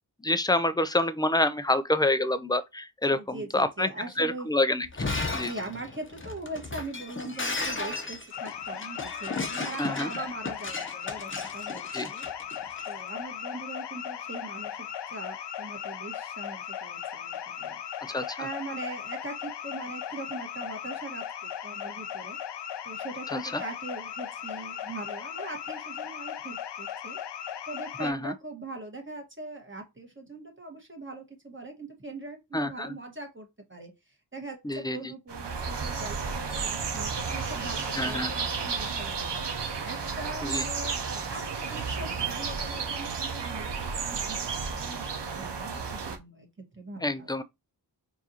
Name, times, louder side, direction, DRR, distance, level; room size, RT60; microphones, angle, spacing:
voice 1, 0.2-3.9 4.2-4.9 5.3-5.5 9.8-10.1 11.9-12.1 18.1-18.4 23.3-23.4 28.0-28.3 32.5-32.9 34.6-35.1 38.0-38.3 40.4-40.6 47.0-47.4, left 1 dB, 10° left, 0.4 m, -27 dB
voice 2, 3.0-4.5 5.4-17.8 18.4-22.4 22.8-27.2 27.7-39.4 39.8-45.1 45.3-47.4, right 2 dB, 25° right, 1.5 m, -41 dB
Shatter, 4.8-12.9, left 3 dB, 30° left, 0.8 m, -35 dB
sound 1, 8.3-28.1, left 9 dB, 70° left, 0.5 m, -37 dB
sound 2, 35.3-46.2, right 5 dB, 70° right, 0.8 m, -32 dB
4.7 x 2.6 x 2.8 m
cardioid pair, 40°, 43 cm